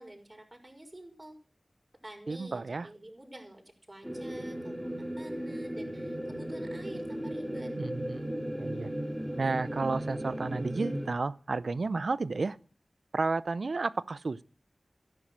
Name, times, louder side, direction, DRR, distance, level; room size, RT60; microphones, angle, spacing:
voice 1, 0.0-1.4 2.0-3.6 3.9-7.7, right 1 dB, 30° right, 5.9 m, -49 dB
voice 2, 2.3-2.9 7.8-8.9 9.4-12.6 13.1-14.4, right 3 dB, 75° right, 0.7 m, -32 dB
sound 1, 4.0-11.1, equal, 10° right, 3.5 m, -36 dB
14.0 x 11.0 x 6.3 m
wide cardioid pair, 45°, 0 cm